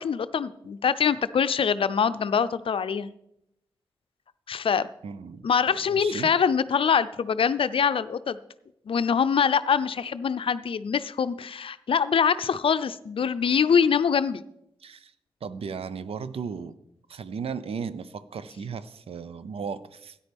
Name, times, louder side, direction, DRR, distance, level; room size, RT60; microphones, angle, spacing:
voice 1, 0.0-3.1 4.5-4.9 5.4-8.4 8.9-14.4, left 6 dB, 60° left, 14 dB, 0.5 m, -24 dB
voice 2, 5.0-5.5 5.9-6.3 14.8-15.1 15.4-16.7 17.1-20.2, right 6 dB, 70° right, 14 dB, 0.7 m, -35 dB
13.0 x 9.8 x 3.5 m, 0.79 s
supercardioid pair, 45°, 10 cm